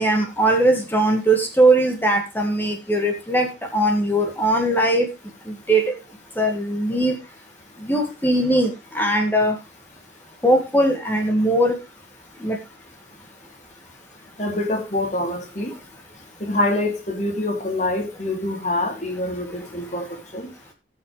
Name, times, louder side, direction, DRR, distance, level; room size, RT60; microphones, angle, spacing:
voice 1, 0.0-3.5 3.7-5.1 5.7-5.8 6.4-7.1 7.9-8.7 9.0-9.5 10.4-11.8 12.4-12.6, right 1 dB, 10° left, 1.8 m, -19 dB
voice 2, 14.4-15.7 16.4-20.5, left 1 dB, 40° left, 2.8 m, -25 dB
18.5 x 6.3 x 3.2 m
head